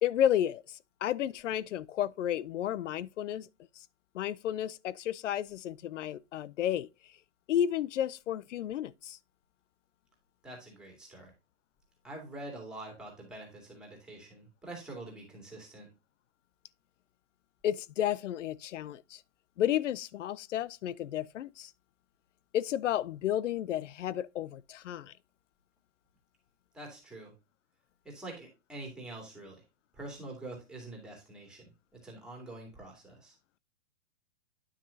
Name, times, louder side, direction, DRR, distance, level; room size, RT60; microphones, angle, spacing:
voice 1, 0.0-3.5 3.8-3.9 4.1-6.9 7.5-9.2 17.6-19.2 19.6-21.7 22.5-25.1, left 11 dB, 85° left, 0.6 m, -32 dB
voice 2, 10.4-11.3 12.0-15.9 26.7-27.3 28.0-29.6 29.9-33.4, right 2 dB, ahead, 2.3 m, -45 dB
9.8 x 6.1 x 2.7 m
hypercardioid pair, 165°, 36 cm